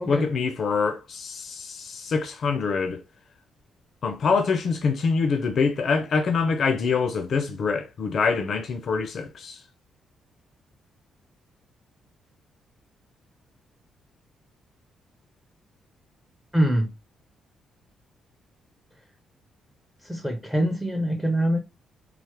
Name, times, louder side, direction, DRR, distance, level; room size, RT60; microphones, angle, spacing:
voice 1, 0.0-3.0 4.0-9.6, left 5 dB, 55° left, 0.4 m, -25 dB
voice 2, 16.5-16.9 20.1-21.6, right 1 dB, ahead, 0.5 m, -24 dB
3.2 x 2.0 x 2.9 m
cardioid pair, 120°, 0 cm